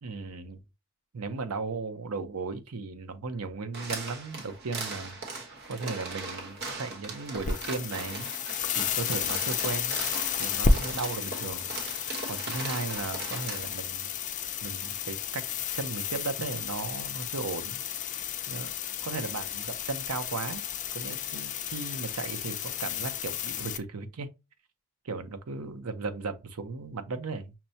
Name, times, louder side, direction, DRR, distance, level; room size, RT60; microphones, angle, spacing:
voice 1, 0.0-0.6 1.1-5.4 5.7-8.3 8.8-10.0 10.4-14.1 14.6-15.4 15.7-17.8 18.1-18.2 18.5-18.7 19.0-20.6 20.9-24.3 25.0-27.5, right 4 dB, 85° right, 0.6 m, -36 dB
sound 1, 3.7-13.7, right 3 dB, 45° right, 1.1 m, -39 dB
sound 2, 7.4-23.8, left 6 dB, 35° left, 0.3 m, -32 dB
5.7 x 2.1 x 2.7 m
head